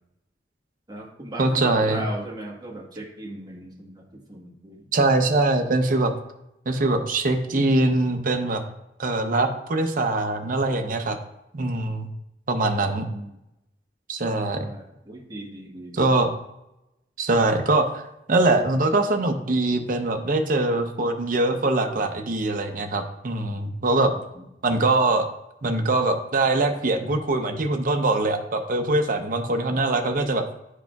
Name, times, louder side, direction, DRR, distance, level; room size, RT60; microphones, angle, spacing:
voice 1, 0.9-4.9 12.7-13.4 14.6-16.1 24.3-24.4, right 1 dB, 25° right, -2 dB, 1.3 m, -38 dB
voice 2, 1.4-2.0 4.9-6.1 6.7-8.6 9.0-11.2 11.5-12.1 12.5-13.0 14.1-14.7 15.9-16.3 17.2-18.0 18.3-24.1 24.6-25.3 25.6-30.4, right 2 dB, 50° right, 6 dB, 0.7 m, -22 dB
10.5 x 4.9 x 2.3 m, 0.87 s
head